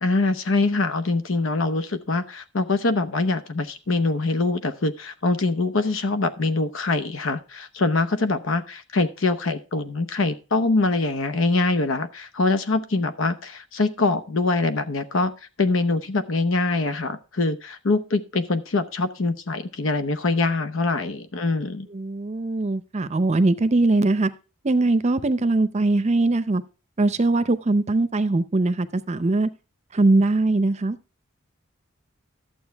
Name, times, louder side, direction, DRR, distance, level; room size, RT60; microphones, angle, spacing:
voice 1, 0.0-15.3 15.6-21.9, left 3 dB, 70° left, 0.9 m, -24 dB
voice 2, 21.9-24.3 24.6-26.6 27.0-29.5 29.9-31.0, right 2 dB, 35° right, 0.6 m, -21 dB
11.5 x 7.8 x 3.4 m
head